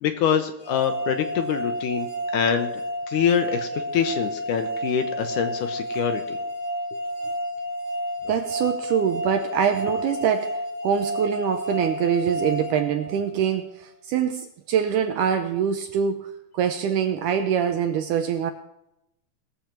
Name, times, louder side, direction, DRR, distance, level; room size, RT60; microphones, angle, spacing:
voice 1, 0.0-2.7 3.1-6.4, left 8 dB, 75° left, 7 dB, 2.0 m, -25 dB
sound 1, 0.6-13.6, right 1 dB, 35° left, 3.8 m, -30 dB
voice 2, 8.3-18.5, right 8 dB, 85° right, 7 dB, 1.9 m, -24 dB
19.5 x 7.2 x 4.4 m, 0.86 s
omnidirectional pair, 4.2 m